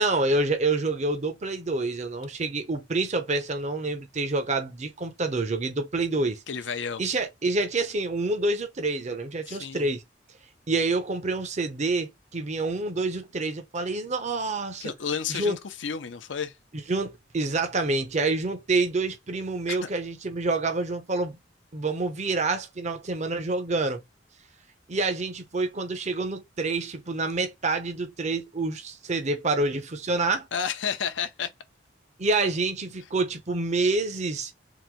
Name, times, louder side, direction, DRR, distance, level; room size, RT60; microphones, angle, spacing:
voice 1, 0.0-6.4 7.0-10.0 10.7-14.9 15.3-15.6 16.7-21.4 21.7-24.0 24.9-30.5 32.2-34.5, right 3 dB, 40° right, 0.7 m, -27 dB
voice 2, 6.5-7.0 9.5-9.9 14.8-16.5 19.7-19.8 30.5-31.5, left 7 dB, 70° left, 0.6 m, -31 dB
3.9 x 2.6 x 4.4 m
head